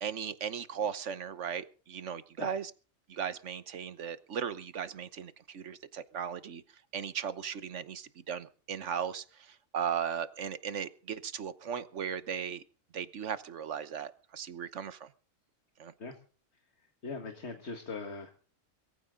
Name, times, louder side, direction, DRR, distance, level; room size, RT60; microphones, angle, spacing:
voice 1, 0.0-2.7 3.1-6.6 6.9-12.6 12.9-15.1 15.8-15.9, right 7 dB, 65° right, 14 dB, 1.3 m, -37 dB
voice 2, 17.0-18.3, left 4 dB, 55° left, 5 dB, 2.1 m, -40 dB
22.0 x 15.0 x 3.8 m, 0.38 s
omnidirectional pair, 1.4 m